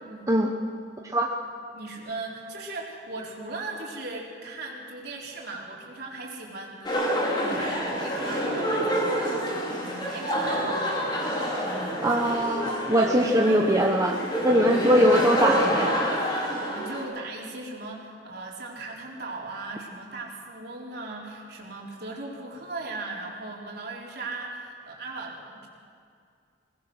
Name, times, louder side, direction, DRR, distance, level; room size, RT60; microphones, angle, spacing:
voice 1, 1.7-11.0 14.8-15.2 16.5-25.7, right 3 dB, 60° right, -2 dB, 4.0 m, -38 dB
sound 1, 6.8-17.0, equal, 25° left, 3.3 m, -28 dB
voice 2, 12.0-14.2 14.4-15.9, equal, 20° right, 0 dB, 1.0 m, -21 dB
22.0 x 19.5 x 6.3 m, 2.3 s
head